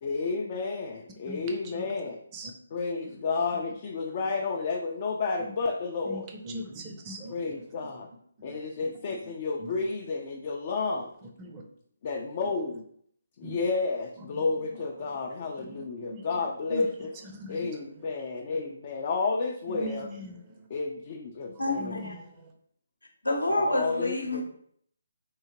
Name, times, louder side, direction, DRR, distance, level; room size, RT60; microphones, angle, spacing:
voice 1, 0.0-2.2 2.7-6.3 7.3-8.1 8.4-11.1 12.0-12.8 13.4-17.1 17.5-20.1 20.7-22.0 23.6-24.4, left 4 dB, 35° left, 2 dB, 0.4 m, -31 dB
voice 2, 1.3-1.9 2.3-2.5 3.0-3.1 3.5-3.6 5.4-5.5 6.0-7.7 8.4-8.6 9.2-9.3 9.6-9.8 11.4-11.6 12.4-12.5 13.4-13.6 14.3-15.2 15.6-15.8 16.1-16.4 16.7-16.9 17.2-17.7 17.9-18.0 19.7-20.7 21.8-22.5, right 1 dB, 20° right, 2 dB, 0.6 m, -42 dB
voice 3, 21.6-22.2 23.2-24.4, left 1 dB, 75° left, 3 dB, 0.8 m, -28 dB
3.6 x 2.7 x 2.9 m, 0.65 s
figure-of-eight pair, 140°, 0 cm